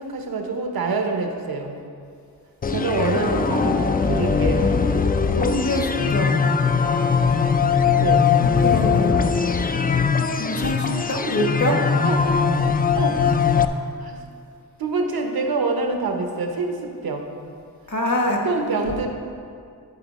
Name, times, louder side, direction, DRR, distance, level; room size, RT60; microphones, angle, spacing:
voice 1, 0.0-1.8 2.7-4.8 8.0-8.3 11.7-12.4 13.0-13.4 14.0-14.2 14.8-17.3 18.2-19.1, right 3 dB, 75° right, 4 dB, 0.9 m, -26 dB
sound 1, 2.6-13.6, left 6 dB, 25° left, 0.4 m, -20 dB
voice 2, 3.1-3.8 5.3-6.5 8.4-9.2 10.4-11.8 17.9-18.4, left 1 dB, 50° left, 1 dB, 1.4 m, -25 dB
12.0 x 4.4 x 4.1 m, 2.4 s
cardioid pair, 50°, 36 cm